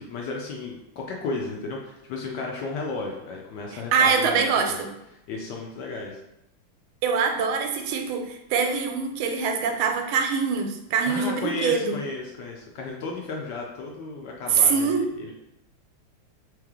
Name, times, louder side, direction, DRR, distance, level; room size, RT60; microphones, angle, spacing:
voice 1, 0.0-4.8 5.3-6.2 11.1-15.3, left 3 dB, 70° left, -1 dB, 1.1 m, -34 dB
voice 2, 3.7-4.9 7.0-11.9 14.5-15.1, right 5 dB, 85° right, 5 dB, 1.4 m, -24 dB
3.3 x 3.1 x 3.6 m, 0.85 s
omnidirectional pair, 2.2 m